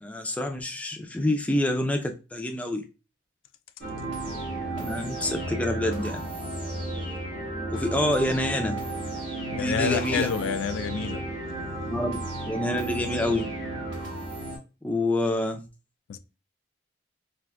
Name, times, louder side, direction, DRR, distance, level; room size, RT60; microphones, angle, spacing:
voice 1, 0.0-2.8 4.8-6.3 7.7-8.8 9.5-10.3 11.9-12.2 12.4-13.5 14.8-15.6, left 1 dB, 5° left, 0.3 m, -27 dB
sound 1, 3.8-14.6, right 1 dB, 70° right, 1.5 m, -33 dB
voice 2, 9.6-11.2 16.1-16.2, left 7 dB, 90° left, 0.3 m, -28 dB
3.5 x 2.6 x 2.2 m
head